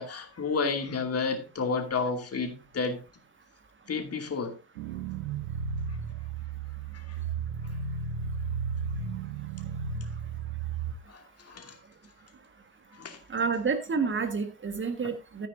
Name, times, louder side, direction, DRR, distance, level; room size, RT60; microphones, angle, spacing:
voice 1, 0.0-3.0 3.9-4.6 6.9-7.2 11.1-11.8 12.9-13.2, left 4 dB, 30° left, 2.6 m, -31 dB
sound 1, 4.8-10.9, right 6 dB, 70° right, 1.1 m, -34 dB
voice 2, 13.3-15.5, right 5 dB, 25° right, 1.7 m, -29 dB
13.5 x 10.0 x 2.7 m
figure-of-eight pair, 60°, 46 cm